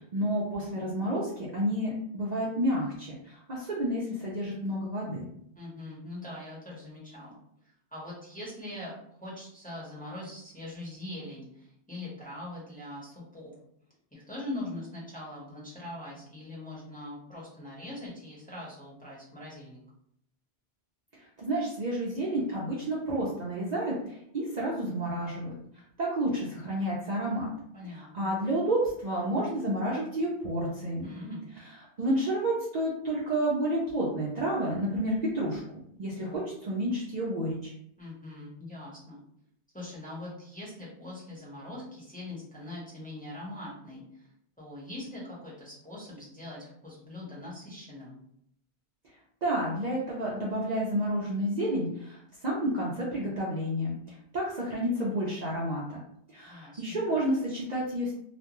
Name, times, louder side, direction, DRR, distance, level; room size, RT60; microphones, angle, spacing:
voice 1, 0.1-5.3 21.1-25.5 26.0-27.5 27.8-31.2 32.0-37.7 49.4-56.0 56.3-58.1, right 1 dB, 50° right, -5 dB, 0.6 m, -30 dB
voice 2, 5.6-7.4 7.9-13.5 14.1-19.8 27.7-28.4 31.0-31.4 38.0-39.2 39.7-44.3 44.6-48.2 56.4-57.0, left 1 dB, 10° left, -7 dB, 0.8 m, -42 dB
2.5 x 2.2 x 2.9 m, 0.70 s
omnidirectional pair, 1.1 m